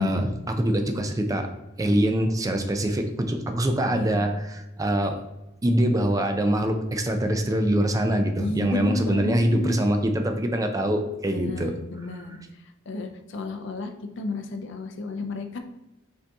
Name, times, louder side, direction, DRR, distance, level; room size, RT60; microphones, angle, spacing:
voice 1, 0.0-1.5 1.8-5.2 5.6-11.8, right 1 dB, 15° right, 5 dB, 0.4 m, -24 dB
voice 2, 8.4-9.8 11.3-12.4 12.9-15.6, left 3 dB, 60° left, 6 dB, 0.5 m, -32 dB
5.3 x 2.7 x 3.5 m, 0.95 s
head